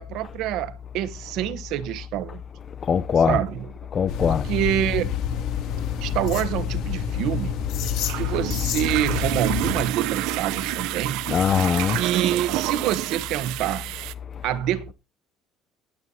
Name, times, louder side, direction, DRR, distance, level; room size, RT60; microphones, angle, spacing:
voice 1, 0.0-2.4 3.3-3.7 4.2-5.1 6.0-7.5 8.2-11.2 11.9-13.9 14.4-14.9, right 12 dB, 65° right, 1.0 m, -26 dB
voice 2, 2.8-3.4 3.9-4.5 8.0-8.1 11.3-12.0 14.3-14.4, left 7 dB, 30° left, 0.5 m, -22 dB
sound 1, 4.1-9.8, left 9 dB, 70° left, 2.4 m, -28 dB
sound 2, 7.1-14.1, right 17 dB, 85° right, 0.5 m, -29 dB
20.5 x 7.7 x 2.7 m
cardioid pair, 160°, 0 cm